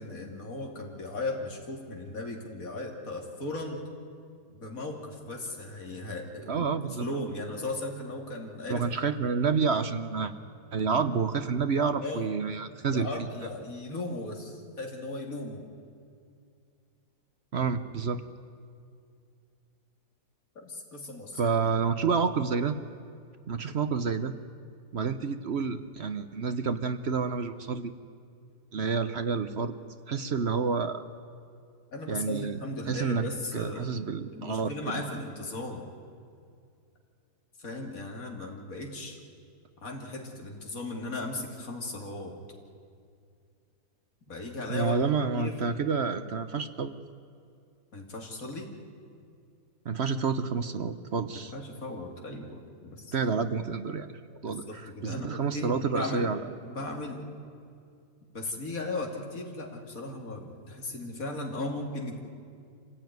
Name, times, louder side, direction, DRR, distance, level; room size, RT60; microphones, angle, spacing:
voice 1, 0.0-3.8 4.5-8.8 12.0-12.3 12.9-15.7 20.5-21.8 31.9-33.9 34.3-35.8 37.6-39.2 39.8-42.3 44.3-45.0 45.3-45.6 47.9-48.7 51.3-53.1 54.5-56.3 56.6-57.2 58.3-62.2, left 2 dB, 55° left, 1 dB, 3.0 m, -37 dB
voice 2, 6.5-7.1 8.7-10.3 10.7-13.1 17.5-18.2 21.4-22.8 23.5-24.3 24.9-27.9 28.7-29.7 30.1-31.0 32.1-32.6 32.9-33.3 33.5-35.0 44.7-47.0 49.8-51.5 53.1-54.1 54.4-56.4, right 5 dB, 50° right, 10 dB, 0.9 m, -29 dB
26.0 x 17.0 x 9.4 m, 2.4 s
omnidirectional pair, 1.8 m